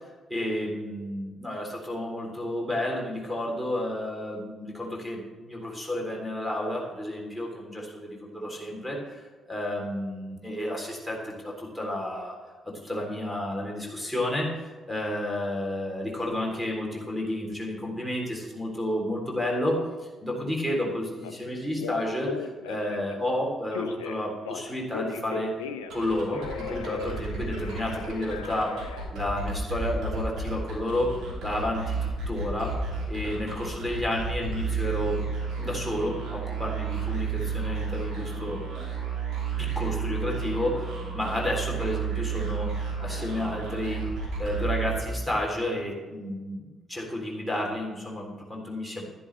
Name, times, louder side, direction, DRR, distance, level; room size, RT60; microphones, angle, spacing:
voice 1, 0.3-9.2 9.5-12.3 12.6-14.5 14.9-25.6 25.9-28.8 29.1-35.2 35.6-38.6 39.6-44.1 44.4-49.0, left 1 dB, ahead, -2 dB, 3.4 m, -31 dB
Telephone, 21.2-21.3 21.7-23.1 23.7-26.0 26.3-29.1, left 8 dB, 75° left, 0.4 m, -37 dB
sound 1, 25.8-45.5, right 5 dB, 60° right, 2.7 m, -32 dB
11.5 x 10.5 x 3.4 m, 1.3 s
figure-of-eight pair, 40°, 0 cm